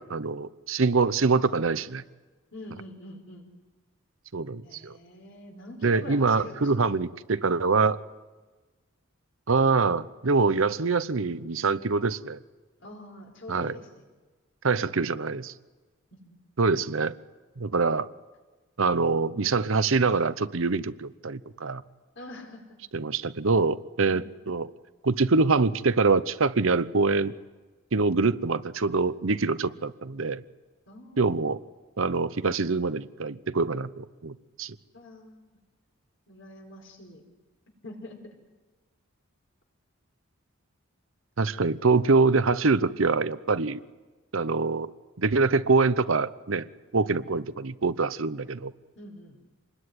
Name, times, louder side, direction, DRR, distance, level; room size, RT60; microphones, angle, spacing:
voice 1, 0.0-2.0 4.3-5.0 5.8-8.0 9.5-12.4 13.5-13.8 14.6-15.5 16.6-17.2 17.6-18.1 18.8-21.8 22.9-24.7 25.0-27.3 27.9-30.4 31.2-31.6 32.0-34.7 41.4-43.8 44.3-44.9 45.2-46.7 46.9-48.7, right 4 dB, 70° right, 14 dB, 0.8 m, -24 dB
voice 2, 2.5-3.5 4.6-7.0 12.8-14.0 16.2-16.4 22.1-22.6 24.1-24.2 30.9-31.4 34.9-35.6 36.3-37.2 37.8-38.4 48.9-49.4, left 1 dB, 60° left, 4 dB, 4.9 m, -44 dB
27.0 x 21.0 x 9.8 m, 1.3 s
head